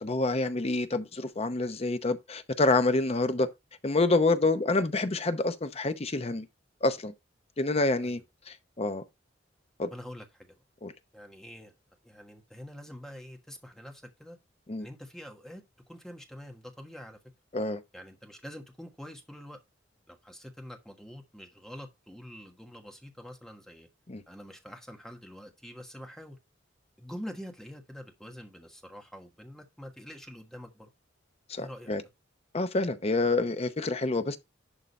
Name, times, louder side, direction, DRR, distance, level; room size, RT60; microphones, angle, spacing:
voice 1, 0.0-3.5 3.8-6.5 6.8-7.1 7.6-8.2 8.5-9.0 9.8-9.9 10.8-10.9 14.7-14.9 17.5-17.8 24.1-24.2 31.5-32.0 32.5-34.4, left 2 dB, 35° left, 0.7 m, -27 dB
voice 2, 9.9-10.6 11.1-11.7 12.0-14.4 14.8-17.2 17.9-19.6 20.1-23.9 24.3-26.4 27.0-30.9 31.6-32.1, equal, 5° left, 1.4 m, -46 dB
11.0 x 3.9 x 4.1 m
head